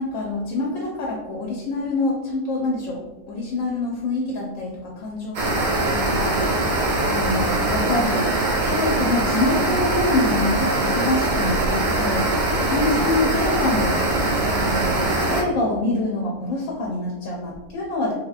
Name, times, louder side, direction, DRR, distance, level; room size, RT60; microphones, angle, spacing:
voice 1, 0.0-3.0 3.3-8.3 8.6-14.1 14.5-15.0 15.3-18.1, left 2 dB, 70° left, -1 dB, 0.9 m, -26 dB
sound 1, 5.3-15.4, right 2 dB, 75° right, 0.4 m, -22 dB
3.4 x 2.9 x 2.4 m, 1.1 s
omnidirectional pair, 1.5 m